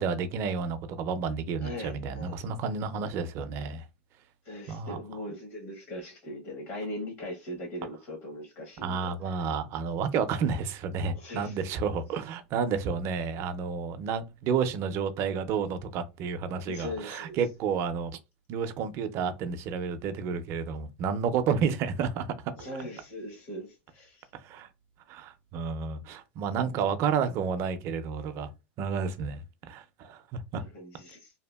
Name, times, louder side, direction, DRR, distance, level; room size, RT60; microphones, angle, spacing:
voice 1, 0.0-3.9 4.7-5.0 8.8-18.1 18.5-22.3 24.4-24.7 25.1-28.5 28.8-30.6, right 6 dB, 40° right, 0.4 m, -31 dB
voice 2, 1.6-2.5 4.4-9.5 11.1-11.6 16.7-17.4 22.6-24.3 30.5-31.3, left 1 dB, 60° left, 0.9 m, -40 dB
2.7 x 2.4 x 2.2 m
supercardioid pair, 135°, 7 cm